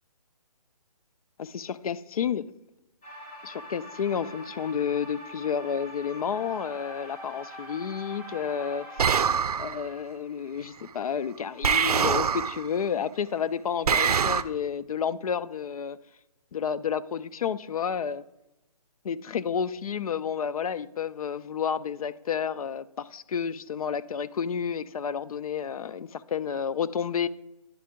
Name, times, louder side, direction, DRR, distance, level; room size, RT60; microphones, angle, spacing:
voice 1, 1.4-2.5 3.4-9.1 9.6-16.0 16.5-18.2 19.0-27.3, left 7 dB, 70° left, 15 dB, 0.4 m, -30 dB
sound 1, 3.0-9.3, equal, 25° left, 1.7 m, -43 dB
sound 2, 9.0-9.9 11.6-12.7 13.9-14.4, right 7 dB, 85° right, 0.4 m, -24 dB
10.5 x 3.7 x 3.5 m, 0.94 s
hypercardioid pair, 160°, 19 cm